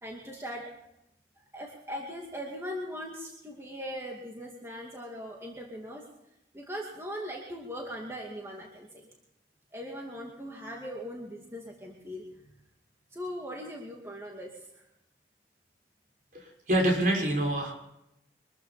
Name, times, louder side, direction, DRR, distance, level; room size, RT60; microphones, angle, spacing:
voice 1, 0.0-0.7 1.5-6.0 6.5-9.1 9.7-12.2 13.1-14.8, equal, 15° right, -1 dB, 2.3 m, -40 dB
voice 2, 16.3-17.7, right 1 dB, 50° right, 1 dB, 5.7 m, -26 dB
24.0 x 14.0 x 4.3 m, 0.84 s
head